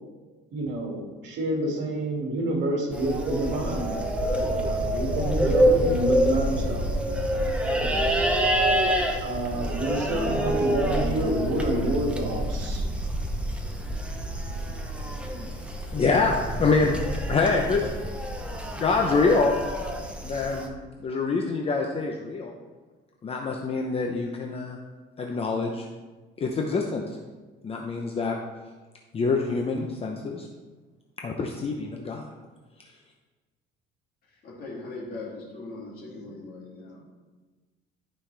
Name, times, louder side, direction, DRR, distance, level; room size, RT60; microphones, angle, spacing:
voice 1, 0.5-4.0 4.5-6.9 7.6-7.9 8.9-12.8 36.2-36.3, right 1 dB, 60° right, -1 dB, 2.3 m, -28 dB
sound 1, 2.9-20.7, equal, 5° right, 0.9 m, -27 dB
voice 2, 15.9-17.0 17.3-17.9 18.8-19.6 20.2-20.7 21.0-22.5 23.2-24.8 25.2-25.9 26.4-27.0 27.6-28.4 29.1-30.4 31.2-32.2, left 4 dB, 30° left, 1 dB, 0.7 m, -25 dB
voice 3, 34.3-37.0, left 2 dB, 45° left, -4 dB, 2.7 m, -40 dB
12.5 x 5.5 x 3.4 m, 1.3 s
cardioid pair, 135°, 21 cm